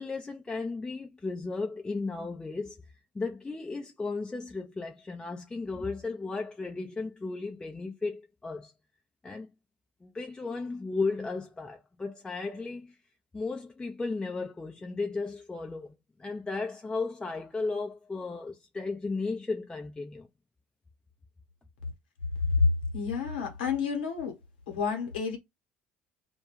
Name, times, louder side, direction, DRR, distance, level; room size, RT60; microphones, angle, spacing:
voice 1, 0.0-2.8 3.1-8.7 9.2-9.5 10.0-13.0 13.3-20.3, left 3 dB, 15° left, 0.4 m, -35 dB
voice 2, 22.9-24.4 24.7-25.4, left 5 dB, 80° left, 1.0 m, -29 dB
2.2 x 2.2 x 3.0 m
hypercardioid pair, 65°, 5 cm